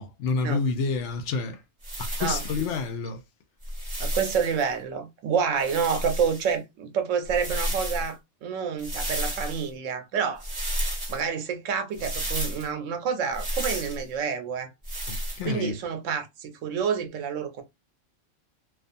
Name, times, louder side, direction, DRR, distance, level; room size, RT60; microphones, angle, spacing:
voice 1, 0.0-1.6 2.0-3.2 15.1-15.8, left 4 dB, 75° left, 0.9 m, -29 dB
sound 1, 1.8-2.8 3.6-4.6 5.6-6.5 7.3-8.1 8.8-9.7 10.4-11.2 11.9-12.7 13.3-14.0 14.8-15.4, equal, 25° right, 1.2 m, -32 dB
voice 2, 4.0-10.4 11.1-14.7 15.4-17.6, right 6 dB, 80° right, 1.0 m, -28 dB
2.4 x 2.4 x 2.5 m
omnidirectional pair, 1.3 m